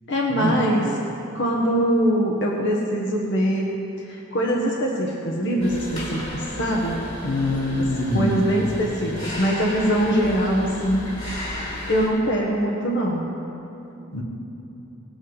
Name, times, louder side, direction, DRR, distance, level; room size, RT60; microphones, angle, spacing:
voice 1, 0.1-0.9 1.3-3.7 4.0-7.0 7.7-7.9 8.1-11.1 11.9-13.3, equal, 60° left, -2 dB, 1.4 m, -23 dB
sound 1, 5.6-12.1, left 1 dB, 35° left, 3.4 m, -34 dB
voice 2, 7.2-8.5 14.1-14.2, left 1 dB, 75° left, 0 dB, 1.6 m, -24 dB
19.5 x 8.6 x 4.1 m, 2.9 s
head